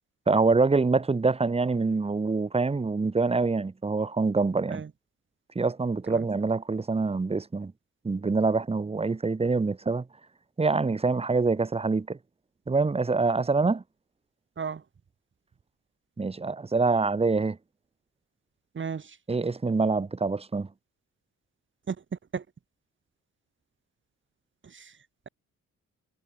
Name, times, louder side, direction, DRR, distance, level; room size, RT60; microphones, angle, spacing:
voice 1, 0.3-4.8 5.5-7.7 8.0-10.1 10.6-12.2 12.7-13.8 16.2-17.6 19.3-20.7, right 4 dB, 20° right, 1.3 m, -25 dB
voice 2, 18.7-19.2 21.9-22.0 22.3-22.4 24.6-24.9, right 6 dB, 40° right, 3.5 m, -34 dB
cardioid pair, 90°, 30 cm